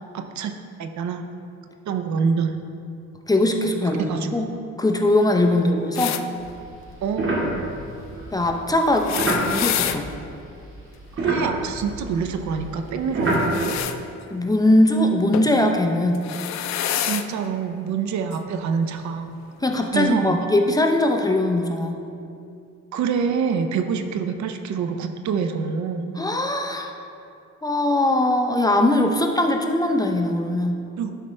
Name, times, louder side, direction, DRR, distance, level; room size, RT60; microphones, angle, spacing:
voice 1, 0.1-0.5 0.8-1.3 1.9-2.6 4.0-4.3 7.0-7.4 11.2-13.8 17.0-19.3 19.9-20.4 22.9-26.1 31.0-31.1, right 6 dB, 70° right, 7 dB, 0.6 m, -26 dB
voice 2, 3.3-4.5 4.8-6.2 8.3-9.1 9.4-10.1 14.3-16.3 19.6-22.0 26.2-26.9 27.6-30.8, left 1 dB, 10° left, 3 dB, 0.6 m, -20 dB
sound 1, 5.9-6.2 8.9-10.0 13.2-14.0 15.3-15.5 16.1-17.3 18.3-18.4 19.6-19.7, left 10 dB, 65° left, 0.5 m, -27 dB
sound 2, 6.4-10.6 10.9-13.8, right 1 dB, 45° right, 1.9 m, -28 dB
11.0 x 4.9 x 3.3 m, 2.5 s
cardioid pair, 90°, 30 cm